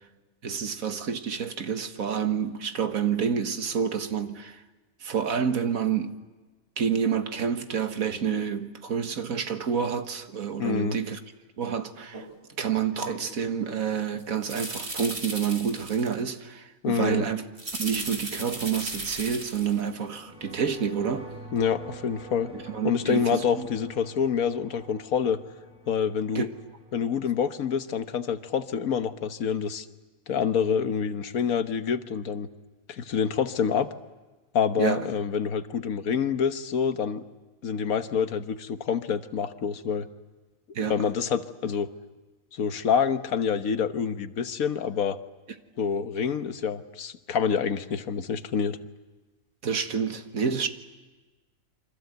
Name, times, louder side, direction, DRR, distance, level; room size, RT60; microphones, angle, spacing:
voice 1, 0.4-4.6 5.0-6.1 6.8-11.2 11.6-12.3 12.6-17.4 17.8-21.3 22.5-23.7 26.4-26.5 34.8-35.1 40.8-41.0 49.6-50.7, right 7 dB, 80° right, 1.8 m, -28 dB
voice 2, 10.6-11.0 16.8-17.2 21.5-22.5 22.8-25.4 25.9-26.5 26.9-29.9 30.3-32.5 32.9-33.9 34.5-37.2 37.6-40.1 40.9-41.9 42.5-45.2 45.8-48.8, left 7 dB, 85° left, 1.5 m, -27 dB
sound 1, 12.1-12.3 13.0-13.3 14.2-16.2 17.6-19.9 20.2-20.3, right 2 dB, 50° right, 3.5 m, -36 dB
sound 2, 20.1-28.8, right 1 dB, 5° right, 6.9 m, -46 dB
28.5 x 25.0 x 8.0 m
omnidirectional pair, 1.4 m